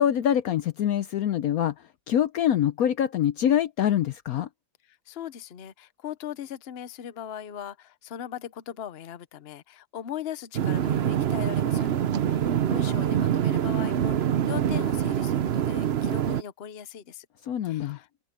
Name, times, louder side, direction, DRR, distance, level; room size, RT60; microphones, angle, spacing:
voice 1, 0.0-1.7 2.1-4.5 17.5-18.0, left 10 dB, 70° left, 1.0 m, -24 dB
voice 2, 4.9-11.9 12.3-17.3 17.6-18.1, left 10 dB, 45° left, 0.9 m, -39 dB
sound 1, 10.5-16.4, right 9 dB, 55° right, 0.7 m, -25 dB
open air
omnidirectional pair, 1.8 m